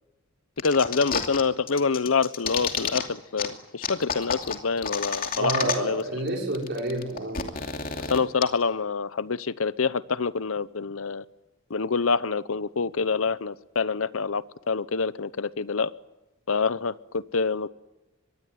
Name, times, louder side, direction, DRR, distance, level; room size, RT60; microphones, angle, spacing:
voice 1, 0.6-6.0 8.0-11.2 11.7-15.9 16.5-17.7, left 4 dB, 85° left, 17 dB, 0.9 m, -26 dB
sound 1, 0.6-1.4 1.7-3.0 3.4-3.5 3.8-6.0 6.3-6.4 6.5-8.4, left 6 dB, 45° left, 2.7 m, -30 dB
voice 2, 5.4-7.4, right 2 dB, 60° right, 1 dB, 5.6 m, -29 dB
24.5 x 22.0 x 9.3 m, 1.0 s
head